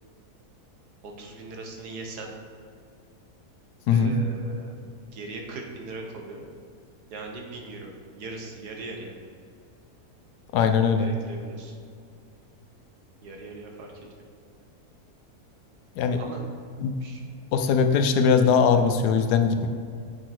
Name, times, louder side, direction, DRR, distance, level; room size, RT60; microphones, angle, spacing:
voice 1, 1.0-2.3 3.9-4.7 5.1-6.5 7.1-9.1 11.0-11.7 13.2-13.9 16.2-16.4 17.0-17.2, right 3 dB, 80° right, 1 dB, 1.6 m, -39 dB
voice 2, 10.5-11.1 16.0-16.2 16.8-17.0 17.5-19.7, left 6 dB, 85° left, 6 dB, 1.2 m, -21 dB
7.4 x 6.3 x 4.4 m, 2.3 s
omnidirectional pair, 1.7 m